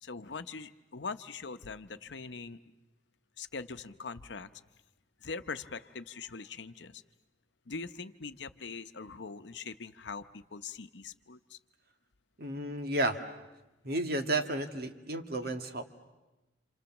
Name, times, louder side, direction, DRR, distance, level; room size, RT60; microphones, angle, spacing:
voice 1, 0.0-2.6 3.4-4.5 5.2-7.0 7.7-11.6 15.4-15.5, left 4 dB, 75° left, 11 dB, 0.8 m, -42 dB
voice 2, 12.4-13.2 13.8-15.8, right 1 dB, 60° right, 6 dB, 1.7 m, -32 dB
28.5 x 27.5 x 7.2 m, 1.1 s
head